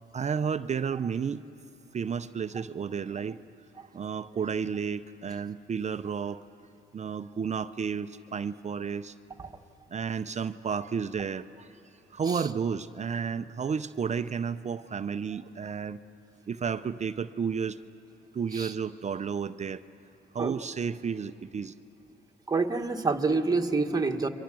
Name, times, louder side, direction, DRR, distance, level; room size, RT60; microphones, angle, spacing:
voice 1, 0.1-1.4 1.9-3.4 3.9-6.4 6.9-9.1 9.9-11.7 12.1-16.0 16.5-17.8 18.3-19.8 20.3-21.7, right 6 dB, 35° right, 12 dB, 0.6 m, -32 dB
voice 2, 22.5-24.3, right 3 dB, 20° right, 4 dB, 1.4 m, -27 dB
29.5 x 24.0 x 6.2 m, 2.8 s
cardioid pair, 90°, 20 cm